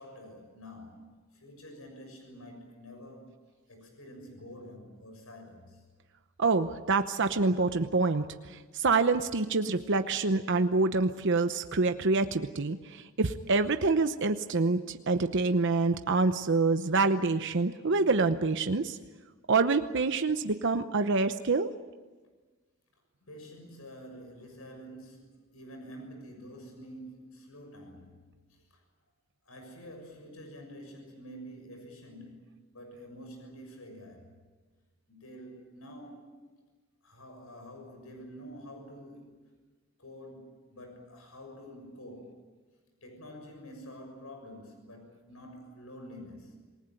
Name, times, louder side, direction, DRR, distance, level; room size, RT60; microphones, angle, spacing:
voice 1, 0.0-3.3 3.7-5.8 23.2-28.8 29.4-34.3 35.1-36.5 37.0-39.4 40.0-42.4 43.0-46.5, equal, 90° left, 4 dB, 6.7 m, -48 dB
voice 2, 6.4-19.0 19.5-21.7, right 3 dB, 60° right, 9 dB, 0.9 m, -26 dB
27.5 x 19.5 x 9.1 m, 1.3 s
head